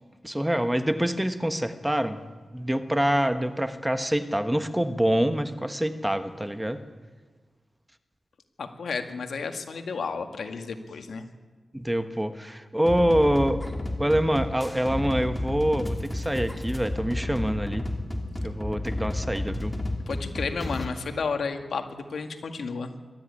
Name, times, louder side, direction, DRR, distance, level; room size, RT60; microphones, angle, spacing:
voice 1, 0.2-2.2 2.5-6.8 11.7-13.6 14.0-17.9 18.4-19.8, equal, 10° right, 10 dB, 1.3 m, -25 dB
voice 2, 8.6-11.2 20.1-22.9, left 5 dB, 80° left, 6 dB, 2.0 m, -32 dB
sound 1, 12.9-20.9, left 1 dB, 15° left, 2.8 m, -32 dB
22.5 x 13.5 x 9.9 m, 1.4 s
wide cardioid pair, 80°, 0 cm